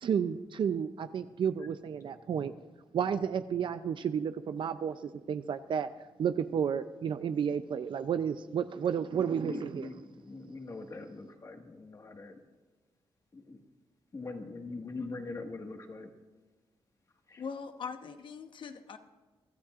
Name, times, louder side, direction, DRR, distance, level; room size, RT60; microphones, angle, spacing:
voice 1, 0.0-2.5 2.9-5.9 6.2-9.9, right 7 dB, 60° right, 10 dB, 0.5 m, -32 dB
voice 2, 9.1-12.4 13.3-13.6 14.1-16.1 17.3-17.4, left 3 dB, 35° left, 4 dB, 1.7 m, -42 dB
voice 3, 17.4-19.0, left 6 dB, 60° left, 8 dB, 1.0 m, -41 dB
23.5 x 13.0 x 2.5 m, 1.3 s
cardioid pair, 105°, 9 cm